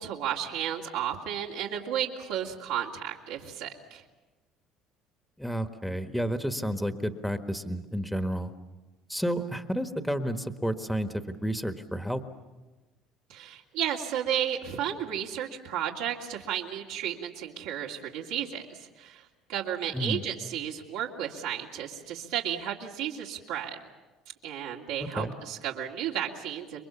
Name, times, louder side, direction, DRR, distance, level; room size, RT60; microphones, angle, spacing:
voice 1, 0.0-4.0 13.3-19.2 19.5-23.8 24.4-26.8, right 10 dB, 85° right, -3 dB, 2.7 m, -33 dB
voice 2, 5.4-8.5 9.1-12.2 19.9-20.2 25.0-25.3, equal, ahead, 7 dB, 1.5 m, -31 dB
28.0 x 22.5 x 7.2 m, 1.2 s
supercardioid pair, 95°, 0 cm